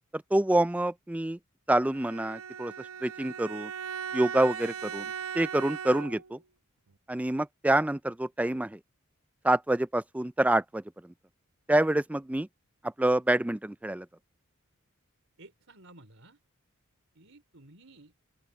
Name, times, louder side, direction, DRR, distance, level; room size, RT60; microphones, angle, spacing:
voice 1, 0.1-1.4 1.7-3.7 4.1-5.1 5.3-6.4 7.1-8.8 9.4-11.1 11.7-12.5 12.8-14.1, right 1 dB, 5° right, 0.3 m, -27 dB
Bowed string instrument, 1.9-6.4, right 8 dB, 80° right, 0.9 m, -38 dB
voice 2, 15.4-16.4 17.1-18.2, right 2 dB, 65° right, 4.8 m, -54 dB
open air
head